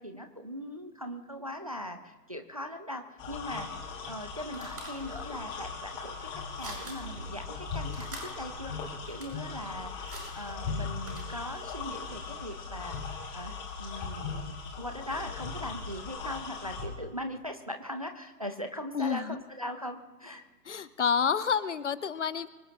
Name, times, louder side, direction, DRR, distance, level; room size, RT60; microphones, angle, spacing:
voice 1, 0.0-3.7 4.1-6.3 6.6-8.7 9.1-20.4, equal, 25° right, 6 dB, 0.5 m, -40 dB
sound 1, 3.2-16.9, left 5 dB, 10° left, 1.1 m, -39 dB
sound 2, 4.0-11.7, right 2 dB, 70° right, 5.5 m, -48 dB
voice 2, 18.9-19.4 20.7-22.5, left 6 dB, 50° left, 16 dB, 0.7 m, -29 dB
24.5 x 17.0 x 2.8 m, 1.3 s
figure-of-eight pair, 140°, 47 cm